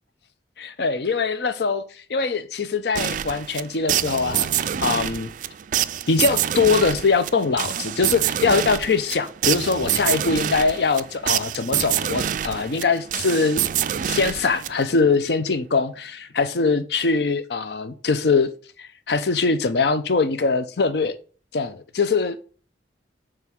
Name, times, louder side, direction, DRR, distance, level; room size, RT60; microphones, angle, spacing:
voice 1, 0.6-5.3 6.1-13.6 14.0-18.5 18.8-21.2 21.5-22.4, left 4 dB, 65° left, 0.6 m, -22 dB
sound 1, 3.0-15.1, right 10 dB, 45° right, 0.3 m, -26 dB
7.0 x 3.4 x 6.2 m
head